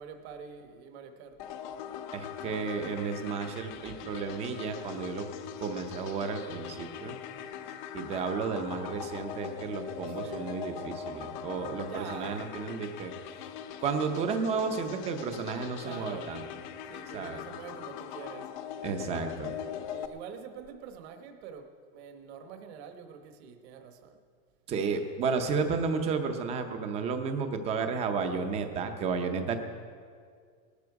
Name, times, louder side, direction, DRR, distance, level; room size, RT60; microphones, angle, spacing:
voice 1, 0.0-1.4 10.1-10.6 11.9-12.5 15.8-16.4 16.9-18.8 19.8-24.2 29.4-29.6, right 6 dB, 50° right, 6 dB, 1.3 m, -45 dB
sound 1, 1.4-20.1, left 9 dB, 35° left, 0.6 m, -41 dB
voice 2, 2.1-5.3 5.6-7.2 7.9-13.1 13.8-16.4 17.1-17.4 18.8-19.5 24.7-29.6, right 5 dB, 15° right, 7 dB, 0.6 m, -32 dB
19.0 x 13.0 x 4.7 m, 2.1 s
supercardioid pair, 175°, 43 cm